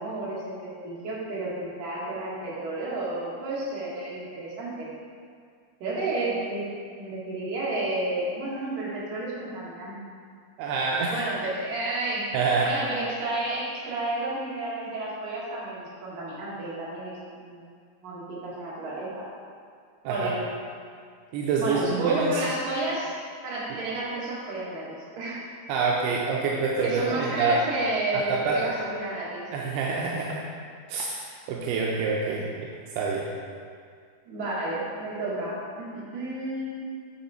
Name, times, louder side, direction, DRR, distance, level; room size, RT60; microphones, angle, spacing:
voice 1, 0.0-4.9 5.8-6.6 7.0-10.0 11.1-12.3 12.6-17.6 18.0-19.3 20.1-20.4 21.6-23.2 23.4-25.4 26.8-29.4 32.2-32.5 34.3-36.8, right 2 dB, 60° right, -7 dB, 3.2 m, -31 dB
voice 2, 10.6-11.1 12.3-12.7 20.1-20.3 21.3-22.4 23.7-23.8 25.7-27.6 28.1-28.6 29.5-30.4 30.9-31.1 31.5-32.7 33.0-33.3, right 4 dB, 85° right, -3 dB, 2.6 m, -26 dB
9.1 x 4.9 x 4.3 m, 2.1 s
omnidirectional pair, 4.6 m